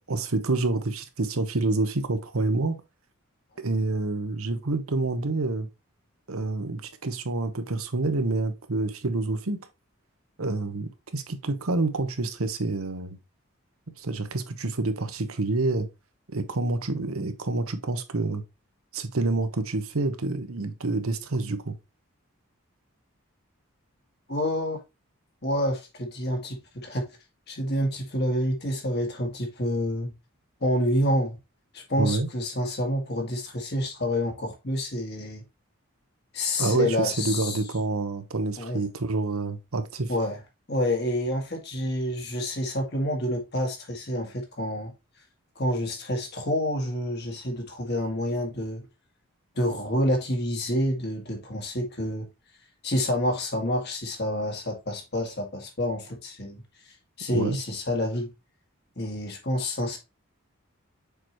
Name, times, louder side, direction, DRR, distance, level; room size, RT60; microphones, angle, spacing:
voice 1, 0.1-2.8 3.6-5.7 6.3-9.6 10.4-13.2 14.0-15.9 16.3-18.4 18.9-21.7 32.0-32.3 36.6-40.1 57.3-57.6, right 3 dB, 80° right, 1.0 m, -27 dB
voice 2, 24.3-24.8 25.4-27.1 27.5-30.1 30.6-31.4 31.7-35.4 36.3-37.6 38.6-38.8 40.1-40.4 40.7-44.9 45.6-48.8 49.6-52.3 52.8-56.6 57.2-58.3 59.0-60.0, left 1 dB, 50° left, 1.9 m, -28 dB
6.7 x 4.7 x 3.0 m
head